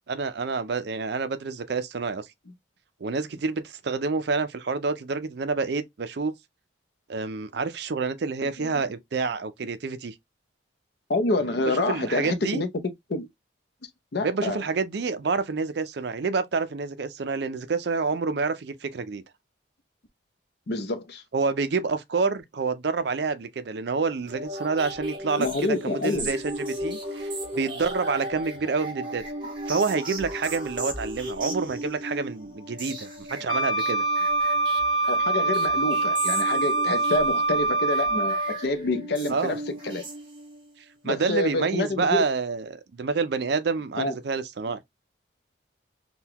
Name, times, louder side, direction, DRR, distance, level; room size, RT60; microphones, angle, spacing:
voice 1, 0.1-2.3 3.0-6.3 7.1-10.1 11.7-12.6 14.2-19.2 21.3-29.2 29.7-34.1 39.3-39.6 41.0-44.8, right 4 dB, 60° right, 0.4 m, -28 dB
voice 2, 11.1-12.8 13.1-13.3 14.1-14.6 20.7-21.2 25.4-26.3 35.1-40.0 41.0-42.2 44.0-44.1, left 2 dB, 55° left, 0.6 m, -27 dB
sound 1, 24.3-40.7, equal, 25° right, 1.0 m, -36 dB
Wind instrument woodwind instrument, 33.5-38.6, right 3 dB, 20° left, 0.7 m, -24 dB
3.8 x 2.2 x 2.7 m
head